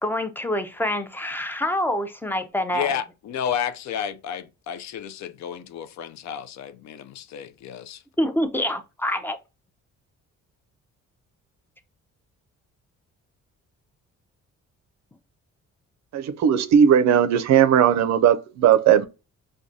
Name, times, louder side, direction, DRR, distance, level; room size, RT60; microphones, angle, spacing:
voice 1, 0.0-2.9 8.2-9.4, left 1 dB, 5° left, 0.5 m, -26 dB
voice 2, 2.7-8.0, left 8 dB, 65° left, 0.5 m, -31 dB
voice 3, 16.1-19.1, right 9 dB, 65° right, 0.5 m, -17 dB
4.6 x 2.2 x 2.6 m
cardioid pair, 90°, 30 cm